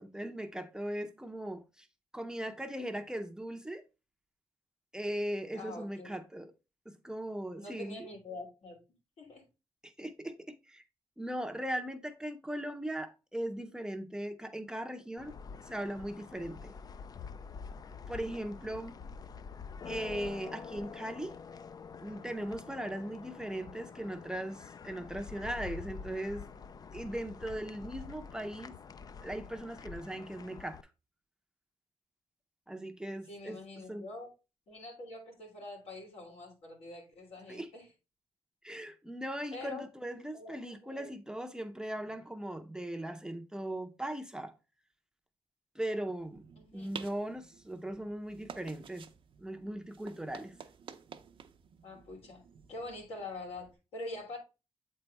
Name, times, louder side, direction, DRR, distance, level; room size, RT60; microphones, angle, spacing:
voice 1, 0.0-1.9 2.1-3.8 4.9-6.5 6.9-8.1 9.8-10.8 11.2-15.3 15.7-16.7 18.1-18.9 19.9-21.4 22.0-26.5 26.9-28.8 29.2-30.8 32.7-33.6 33.9-34.1 37.5-37.7 38.6-44.5 45.8-46.4 46.7-49.1 49.4-50.5, right 1 dB, 5° right, 0.6 m, -39 dB
voice 2, 5.5-6.1 7.6-8.8 9.2-9.5 33.2-34.3 34.7-37.9 39.5-39.9 40.3-41.1 46.6-46.9 51.8-52.4 52.7-54.4, left 2 dB, 85° left, 2.8 m, -45 dB
sound 1, 15.2-30.8, left 5 dB, 40° left, 0.4 m, -47 dB
sound 2, 46.2-53.7, right 7 dB, 60° right, 0.6 m, -51 dB
7.9 x 4.1 x 3.3 m
wide cardioid pair, 120°, 10 cm